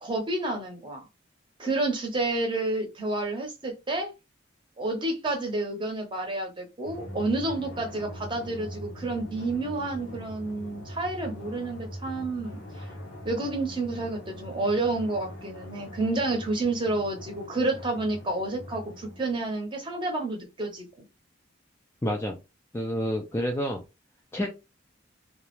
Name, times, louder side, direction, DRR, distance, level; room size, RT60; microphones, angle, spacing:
voice 1, 0.0-1.1 1.6-4.1 4.8-12.6 13.2-21.1, right 2 dB, 25° right, 1 dB, 0.7 m, -30 dB
Drum, 6.8-19.9, equal, 85° left, 0.7 m, -42 dB
voice 2, 22.0-22.4 22.7-23.8 24.3-24.5, equal, 15° left, 1 dB, 0.3 m, -28 dB
2.3 x 2.0 x 2.9 m, 0.25 s
head